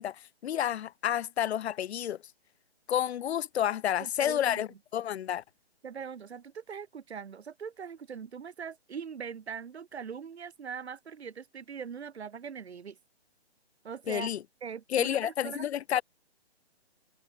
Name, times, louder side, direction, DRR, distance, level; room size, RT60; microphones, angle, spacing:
voice 1, 0.0-2.2 2.9-5.4 14.1-14.4 14.9-16.0, left 10 dB, 75° left, 0.5 m, -30 dB
voice 2, 4.0-4.6 5.8-13.0 13.8-14.3 14.6-15.7, right 6 dB, 80° right, 1.2 m, -41 dB
hypercardioid pair, 160°, 32 cm